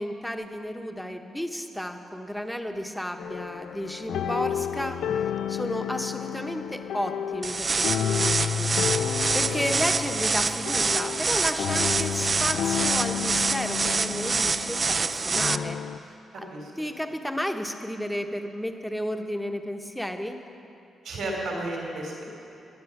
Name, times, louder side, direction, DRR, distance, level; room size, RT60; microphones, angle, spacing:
voice 1, 0.0-8.7 9.3-15.8 16.3-16.5 16.8-20.4, equal, ahead, 5 dB, 1.0 m, -33 dB
sound 1, 3.2-16.0, left 9 dB, 80° left, 0.3 m, -31 dB
sound 2, 7.4-15.6, right 4 dB, 35° right, 0.4 m, -26 dB
voice 2, 9.2-9.6 16.5-16.7 21.0-22.2, right 1 dB, 70° right, -1 dB, 3.0 m, -33 dB
20.5 x 9.9 x 5.9 m, 2.8 s
cardioid pair, 120°, 0 cm